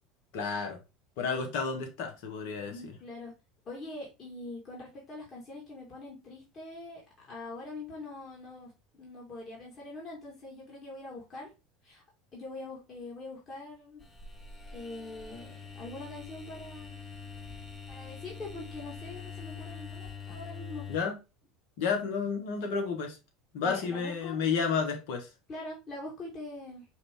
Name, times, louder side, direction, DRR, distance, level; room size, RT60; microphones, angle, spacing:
voice 1, 0.3-0.8 1.2-2.9 20.9-21.2 21.8-23.2 23.5-25.3, left 5 dB, 70° left, 1.3 m, -31 dB
voice 2, 2.7-3.3 3.7-7.0 7.3-11.5 11.8-12.0 12.3-14.0 14.7-17.0 17.9-20.9 23.6-24.4 25.5-26.8, left 2 dB, 40° left, 2.0 m, -43 dB
sound 1, 14.0-21.0, left 5 dB, 20° left, 1.1 m, -44 dB
4.9 x 2.7 x 3.5 m
hypercardioid pair, 90°, 0 cm